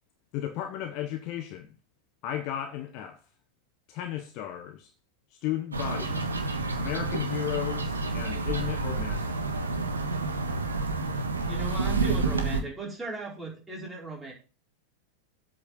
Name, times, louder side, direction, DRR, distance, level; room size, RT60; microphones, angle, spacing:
voice 1, 0.3-1.7 2.2-3.2 3.9-4.9 5.3-6.3 6.7-9.4, left 12 dB, 40° left, 1.1 m, -34 dB
sound 1, 5.7-12.6, right 3 dB, 75° right, 1.5 m, -29 dB
voice 2, 11.4-14.3, right 2 dB, 10° right, 4.8 m, -37 dB
8.3 x 5.8 x 7.6 m
figure-of-eight pair, 90°, 0 cm